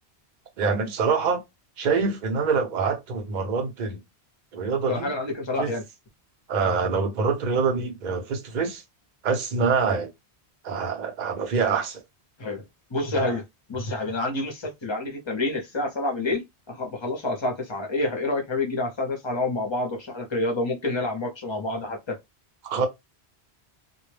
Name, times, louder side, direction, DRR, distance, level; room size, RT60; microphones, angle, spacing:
voice 1, 0.6-1.4 1.8-4.0 4.5-5.1 5.6-5.7 6.5-8.8 9.2-10.1 10.6-12.0 22.6-22.9, right 5 dB, 50° right, 0.7 m, -25 dB
voice 2, 4.9-5.8 12.4-12.6 12.9-13.4 13.7-22.2, left 2 dB, 30° left, 0.7 m, -28 dB
2.1 x 2.1 x 3.2 m
omnidirectional pair, 1.1 m